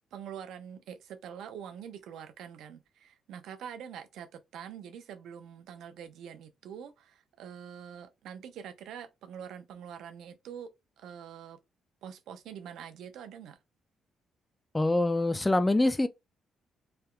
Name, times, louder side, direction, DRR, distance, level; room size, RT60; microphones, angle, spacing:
voice 1, 0.1-10.7 11.0-11.6 12.0-13.6, right 8 dB, 80° right, 0.5 m, -45 dB
voice 2, 14.7-16.1, left 2 dB, 15° left, 0.4 m, -25 dB
3.3 x 2.9 x 2.3 m
cardioid pair, 90°, 0 cm